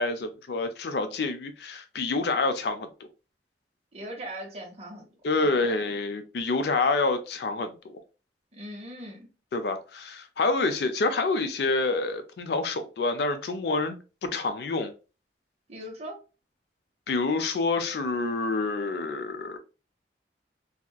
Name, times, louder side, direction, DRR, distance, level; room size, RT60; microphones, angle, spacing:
voice 1, 0.0-2.9 5.2-8.0 9.5-14.0 14.2-14.9 17.1-19.6, left 3 dB, 65° left, 0.4 m, -27 dB
voice 2, 3.9-5.1 5.6-5.9 8.5-9.3 15.7-16.2, equal, 35° right, 0.9 m, -40 dB
2.8 x 2.4 x 2.2 m
head